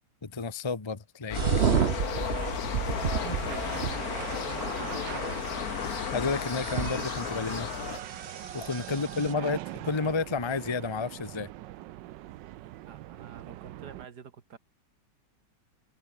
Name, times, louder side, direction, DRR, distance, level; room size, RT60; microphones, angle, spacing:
voice 1, 0.2-1.5 3.2-3.4 5.8-7.7 8.5-9.6 9.8-11.5, left 4 dB, 20° left, 1.0 m, -31 dB
sound 1, 1.3-8.0, left 9 dB, 60° left, 1.5 m, -34 dB
sound 2, 1.3-9.3, right 7 dB, 40° right, 1.2 m, -32 dB
sound 3, 1.3-14.1, right 15 dB, 85° right, 1.3 m, -43 dB
voice 2, 1.7-5.4 12.8-14.6, right 7 dB, 65° right, 2.3 m, -47 dB
omnidirectional pair, 1.9 m